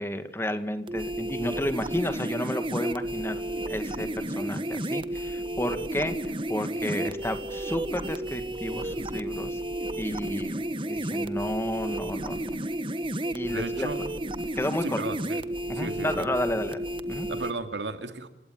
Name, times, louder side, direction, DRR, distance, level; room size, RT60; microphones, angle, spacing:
voice 1, 0.0-9.6 10.0-10.6 10.9-12.5 13.3-13.9 14.6-15.0 15.7-16.8 17.1-17.3, left 1 dB, 15° left, 9 dB, 2.0 m, -32 dB
sound 1, 0.9-17.5, right 1 dB, 30° right, 1.3 m, -32 dB
voice 2, 13.5-14.0 14.8-15.4 15.7-16.3 17.3-18.3, right 2 dB, 85° right, 8 dB, 2.5 m, -34 dB
29.5 x 17.0 x 9.7 m, 0.89 s
head